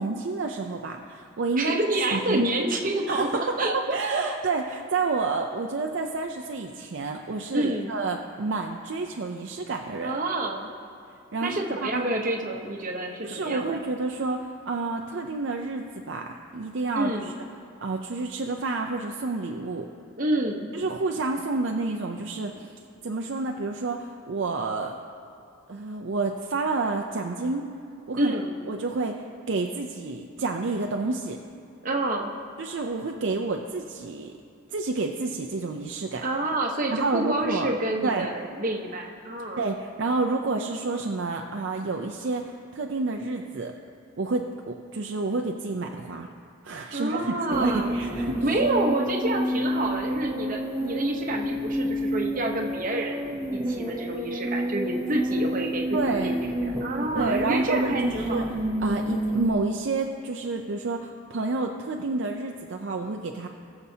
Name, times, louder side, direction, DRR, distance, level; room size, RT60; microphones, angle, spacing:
voice 1, 0.0-2.4 3.1-10.1 11.3-12.1 13.2-17.3 17.8-19.9 20.7-22.7 23.0-25.0 25.7-27.6 28.1-28.4 28.7-31.4 32.6-34.3 34.7-36.3 36.9-37.7 38.0-38.3 39.6-43.7 44.2-46.3 46.6-48.4 55.9-56.4 57.1-58.5 58.8-63.5, right 3 dB, 60° right, 2 dB, 0.5 m, -29 dB
voice 2, 1.6-4.2 7.5-7.9 10.0-10.7 11.4-13.8 17.0-17.3 20.1-20.7 28.1-28.5 31.8-32.3 36.2-39.6 46.9-53.2 53.5-58.5, right 1 dB, 40° right, 1 dB, 0.9 m, -28 dB
sound 1, 47.5-59.5, equal, 15° right, 0.8 m, -29 dB
19.5 x 6.8 x 2.8 m, 2.6 s
head